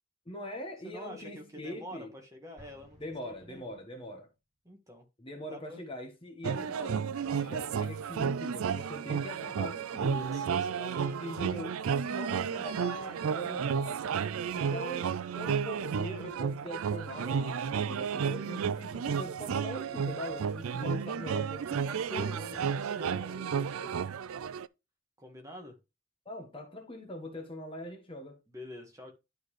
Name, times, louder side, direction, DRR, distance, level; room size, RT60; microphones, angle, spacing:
voice 1, 0.3-2.1 3.0-4.3 5.2-10.1 11.2-14.2 14.6-21.8 26.2-28.4, left 1 dB, 25° left, 1.2 m, -42 dB
voice 2, 0.8-3.8 4.6-5.0 5.5-5.8 10.1-11.6 21.8-23.9 25.2-25.7 28.5-29.1, left 1 dB, 15° right, 1.6 m, -46 dB
Explosion, 2.6-4.2, equal, 30° right, 3.8 m, -59 dB
sound 1, 6.4-24.7, right 6 dB, 75° right, 0.4 m, -32 dB
11.0 x 3.9 x 3.2 m
head